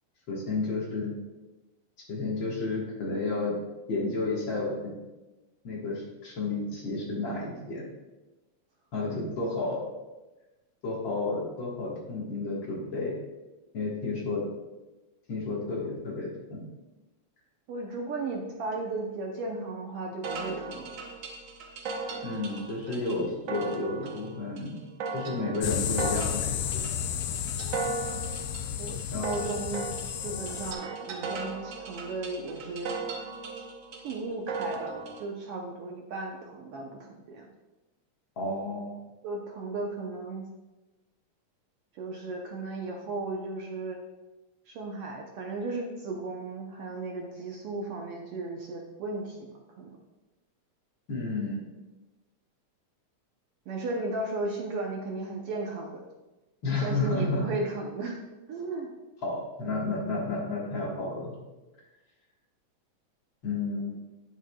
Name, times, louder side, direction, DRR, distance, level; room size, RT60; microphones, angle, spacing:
voice 1, 0.3-1.1 2.1-3.5 3.9-4.9 5.6-7.9 8.9-9.8 10.8-13.2 13.7-14.4 15.3-16.6 22.2-24.8 25.1-26.5 26.7-26.8 29.1-29.5 38.4-38.9 51.1-51.6 56.6-57.5 59.2-61.4 63.4-63.9, left 3 dB, 50° left, -4 dB, 1.9 m, -31 dB
voice 2, 17.7-20.9 27.2-27.4 28.8-29.8 30.2-33.0 33.5-33.7 34.0-34.9 35.2-36.9 37.3-37.5 39.2-40.5 41.9-44.0 44.7-50.0 53.7-56.1 56.7-58.2 58.5-58.9, right 2 dB, 70° right, 0 dB, 1.4 m, -35 dB
sound 1, 20.2-35.2, right 4 dB, 85° right, 1.0 m, -37 dB
sound 2, 25.6-30.7, left 9 dB, 80° left, 1.4 m, -32 dB
10.0 x 7.3 x 2.3 m, 1.1 s
omnidirectional pair, 3.3 m